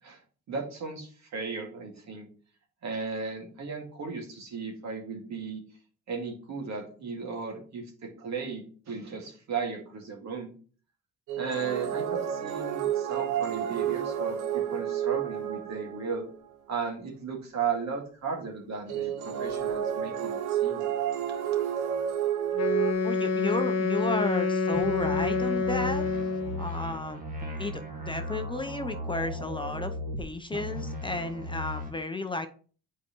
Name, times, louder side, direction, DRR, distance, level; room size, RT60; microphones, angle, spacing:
voice 1, 0.5-2.3 2.8-5.6 6.1-10.5 11.4-16.3 16.7-20.9, right 5 dB, 65° right, 1 dB, 2.1 m, -35 dB
sound 1, 11.3-16.3 18.9-22.9, right 10 dB, 90° right, 1.0 m, -30 dB
Wind instrument woodwind instrument, 22.5-26.7, left 4 dB, 55° left, 1.2 m, -27 dB
voice 2, 23.0-26.0 26.6-27.2 27.6-32.5, left 2 dB, 15° left, 6 dB, 0.6 m, -33 dB
sound 2, 24.7-30.2 30.5-31.9, left 1 dB, 25° right, 1.5 m, -37 dB
8.3 x 4.7 x 3.0 m, 0.41 s
cardioid pair, 90°, 30 cm